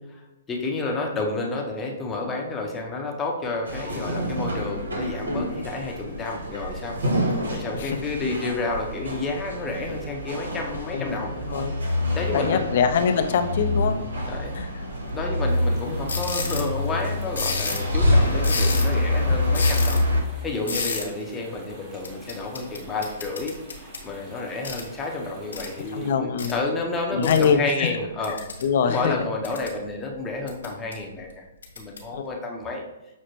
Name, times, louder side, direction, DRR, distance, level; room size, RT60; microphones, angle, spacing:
voice 1, 0.5-7.0 7.5-11.7 12.1-12.7 13.8-14.5 15.1-23.5 24.0-28.4 28.9-31.4 31.8-32.8, left 3 dB, 15° left, 0 dB, 0.7 m, -30 dB
sound 1, 3.7-20.2, left 1 dB, 85° right, 1.0 m, -26 dB
voice 2, 12.3-14.0 14.5-14.9 20.7-20.8 25.9-26.6 27.1-27.9 28.6-29.1 32.1-32.3, left 6 dB, 55° left, 8 dB, 0.4 m, -24 dB
sound 2, 15.5-26.1, equal, 20° right, 1.1 m, -47 dB
sound 3, 16.1-16.7 17.4-17.9 18.4-19.0 19.5-20.0 20.7-21.1 22.0-24.1 24.6-24.9 25.5-25.7 26.4-26.5 27.2-27.5 28.2-28.7 29.2-29.8 30.5-30.9 31.6-32.0, left 4 dB, 85° left, 0.9 m, -30 dB
6.1 x 2.1 x 3.0 m, 1.0 s
hypercardioid pair, 135°, 0 cm